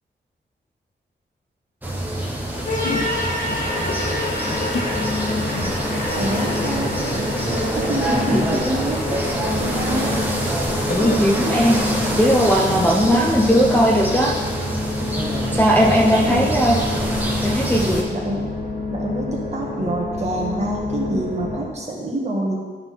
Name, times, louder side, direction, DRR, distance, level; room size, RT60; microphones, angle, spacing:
sound 1, 1.8-18.0, right 1 dB, 10° right, 1.1 m, -26 dB
sound 2, 2.5-11.4, left 3 dB, 75° left, 0.8 m, -34 dB
sound 3, 2.7-21.7, left 2 dB, 40° left, 1.8 m, -28 dB
voice 1, 6.2-10.2 13.0-13.2 15.8-16.5 18.1-18.5 18.9-22.7, right 1 dB, 35° right, -2 dB, 1.6 m, -27 dB
voice 2, 10.9-11.7 12.2-14.3 15.5-16.8 17.4-18.0, equal, 10° left, -2 dB, 0.7 m, -18 dB
11.5 x 3.9 x 5.7 m, 1.5 s
wide cardioid pair, 160°, 19 cm